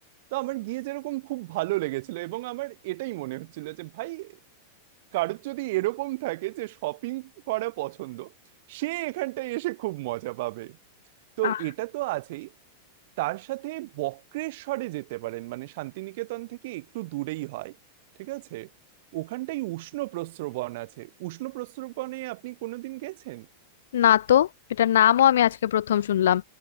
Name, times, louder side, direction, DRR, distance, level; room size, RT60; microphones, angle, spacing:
voice 1, 0.3-4.4 5.1-8.3 8.7-10.8 11.4-12.5 13.2-17.8 18.2-18.7 19.1-23.5, right 20 dB, 65° right, 4.0 m, -32 dB
voice 2, 23.9-24.5 24.8-26.4, left 11 dB, 85° left, 1.2 m, -20 dB
hypercardioid pair, 125°, 0 cm